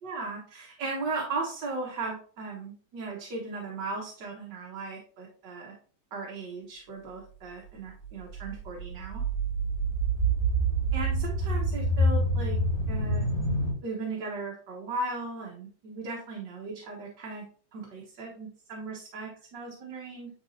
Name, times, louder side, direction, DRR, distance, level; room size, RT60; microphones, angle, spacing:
voice 1, 0.0-5.7 6.1-9.2 10.9-12.6 12.9-13.2 13.8-17.5 17.7-20.3, right 3 dB, 65° right, -1 dB, 1.8 m, -37 dB
sound 1, 8.3-13.7, right 2 dB, 20° left, 2.5 m, -27 dB
9.5 x 4.1 x 2.6 m, 0.44 s
omnidirectional pair, 2.1 m